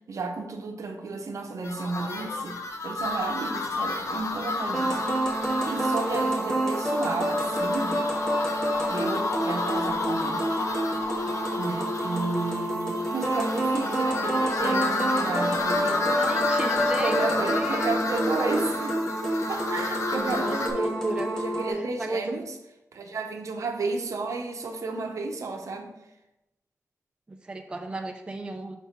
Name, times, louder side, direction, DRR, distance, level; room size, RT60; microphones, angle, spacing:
voice 1, 0.1-2.6 2.8-5.0 5.6-8.0 8.9-10.5 11.6-16.5 17.0-19.0 19.5-22.6 22.9-25.9, right 3 dB, 65° right, 4 dB, 0.7 m, -32 dB
sound 1, 1.6-20.7, left 3 dB, 65° left, 0.8 m, -31 dB
sound 2, 4.7-21.7, right 1 dB, 10° left, 1.4 m, -28 dB
voice 2, 16.1-17.9 20.1-21.3 21.7-22.4 27.3-28.8, right 2 dB, 15° right, 3 dB, 0.4 m, -33 dB
5.9 x 3.0 x 5.6 m, 0.94 s
wide cardioid pair, 155°, 6 cm